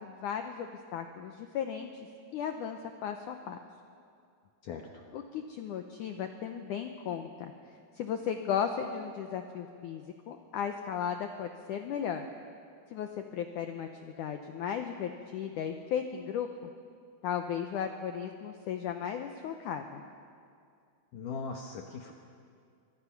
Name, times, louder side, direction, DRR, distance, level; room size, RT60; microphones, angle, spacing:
voice 1, 0.0-1.9 2.3-3.6 5.1-12.3 12.9-16.5 17.2-20.0, left 8 dB, 80° left, 6 dB, 1.8 m, -36 dB
voice 2, 21.1-22.1, left 5 dB, 65° left, 2 dB, 2.3 m, -39 dB
25.5 x 23.0 x 5.9 m, 2.3 s
omnidirectional pair, 4.8 m